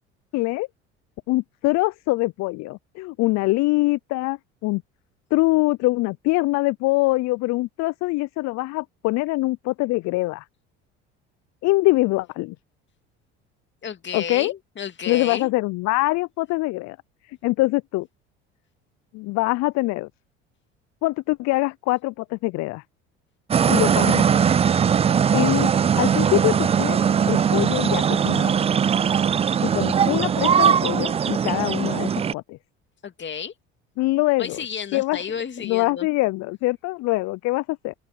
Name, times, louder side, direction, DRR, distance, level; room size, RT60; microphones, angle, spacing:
voice 1, 0.3-0.7 1.3-4.8 5.3-10.4 11.6-12.6 14.1-14.5 15.1-17.0 17.4-18.1 19.1-20.1 21.0-22.8 23.7-24.3 25.3-25.7 26.0-27.0 27.3-28.6 29.6-32.6 34.0-34.6 34.9-35.2 35.6-37.9, left 21 dB, 55° left, 0.6 m, -23 dB
voice 2, 13.8-15.5 33.0-33.5 34.4-36.1, left 7 dB, 35° left, 2.3 m, -32 dB
sound 1, 23.5-32.3, right 7 dB, 20° right, 0.4 m, -20 dB
open air
hypercardioid pair, 70°, 33 cm